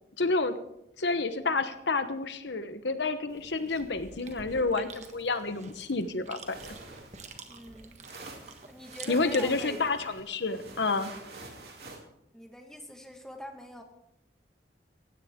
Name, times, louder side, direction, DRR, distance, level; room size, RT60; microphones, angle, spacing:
voice 1, 0.2-0.6 1.0-6.6 9.1-11.1, left 3 dB, 80° left, 10 dB, 1.1 m, -29 dB
Chewing mastication, 3.3-10.2, right 4 dB, 40° right, 1.5 m, -48 dB
sound 1, 6.5-12.0, right 3 dB, 60° right, 3.1 m, -47 dB
voice 2, 7.5-8.0 8.7-9.8 12.3-13.8, equal, 5° left, 3 dB, 1.6 m, -44 dB
17.5 x 16.0 x 3.8 m, 0.82 s
head